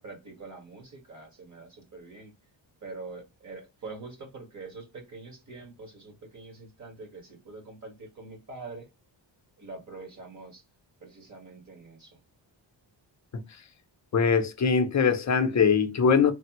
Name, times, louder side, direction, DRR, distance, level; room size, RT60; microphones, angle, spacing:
voice 1, 0.0-2.3 2.8-8.9 9.6-10.6 11.0-12.2, right 3 dB, 40° right, 1.4 m, -44 dB
voice 2, 14.1-16.3, left 6 dB, 40° left, 0.5 m, -22 dB
3.3 x 2.0 x 2.9 m
wide cardioid pair, 115°, 47 cm